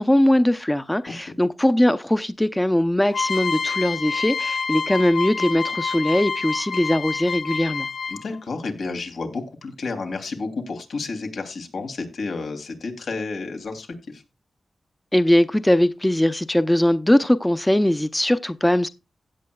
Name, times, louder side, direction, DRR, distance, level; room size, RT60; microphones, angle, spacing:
voice 1, 0.0-7.9 15.1-18.9, left 1 dB, 10° left, 0.7 m, -20 dB
sound 1, 3.1-8.4, left 5 dB, 70° left, 1.1 m, -27 dB
voice 2, 8.1-14.2, left 3 dB, 85° left, 3.1 m, -31 dB
16.0 x 8.9 x 2.3 m
wide cardioid pair, 80°, 0 cm